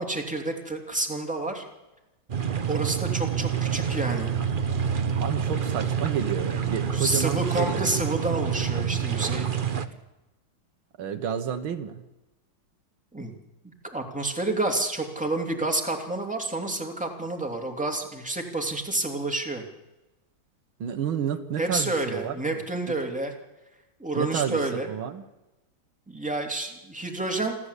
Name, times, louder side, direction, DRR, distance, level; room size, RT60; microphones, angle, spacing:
voice 1, 0.0-1.6 2.7-4.3 6.9-9.5 13.1-13.3 13.6-19.6 21.6-23.3 24.0-24.9 26.1-27.6, right 2 dB, 5° right, 3 dB, 2.8 m, -29 dB
sound 1, 2.3-9.9, right 7 dB, 40° right, 0.8 m, -27 dB
sound 2, 3.1-8.9, right 5 dB, 65° right, 1.9 m, -46 dB
voice 2, 5.2-8.0 11.0-12.1 20.8-22.4 22.8-22.9 24.2-25.2, right 8 dB, 85° right, 9 dB, 2.1 m, -30 dB
27.5 x 13.5 x 8.3 m, 1.0 s
omnidirectional pair, 2.2 m